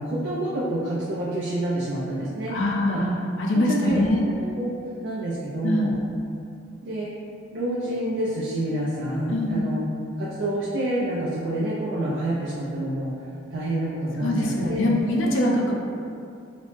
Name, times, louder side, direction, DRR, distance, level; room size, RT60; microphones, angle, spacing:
voice 1, 0.0-2.5 2.8-3.0 3.5-4.7 5.0-5.9 6.8-7.1 7.5-9.8 10.2-13.1 13.5-14.8, right 1 dB, 60° right, -8 dB, 0.3 m, -28 dB
voice 2, 2.5-4.2 5.6-6.0 9.3-9.7 14.2-15.7, left 1 dB, 75° left, -1 dB, 0.4 m, -23 dB
2.9 x 2.0 x 3.1 m, 2.5 s
head